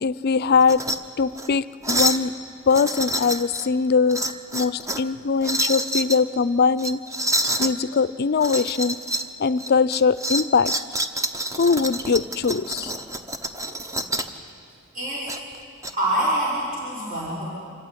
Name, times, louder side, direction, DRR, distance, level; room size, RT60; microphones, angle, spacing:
voice 1, 0.0-0.8 1.2-2.3 2.7-4.2 4.5-7.0 7.6-9.0 9.4-10.7 11.6-12.9, left 5 dB, 50° left, 17 dB, 0.5 m, -21 dB
sound 1, 0.6-1.0 1.3-1.5 1.8-2.3 2.7-3.7 4.1-5.1 5.4-6.2 6.8-7.7 8.4-9.3 9.6-14.4 15.3-15.9, right 1 dB, 15° right, 0.9 m, -27 dB
voice 2, 14.9-15.3 15.9-17.4, right 1 dB, 40° right, -7 dB, 5.6 m, -25 dB
26.0 x 15.0 x 9.8 m, 2.5 s
head